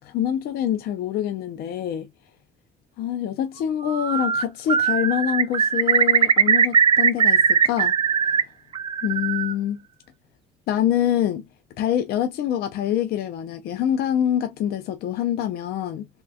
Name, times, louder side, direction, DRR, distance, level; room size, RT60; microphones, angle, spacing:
voice 1, 0.0-2.1 3.0-7.9 8.2-8.5 9.0-9.8 10.7-11.5 11.8-16.1, left 10 dB, 65° left, 0.5 m, -25 dB
Bird, 3.9-4.4 4.7-8.4 8.7-9.5, right 7 dB, 30° right, 0.4 m, -19 dB
3.5 x 2.2 x 2.6 m
cardioid pair, 110°, 17 cm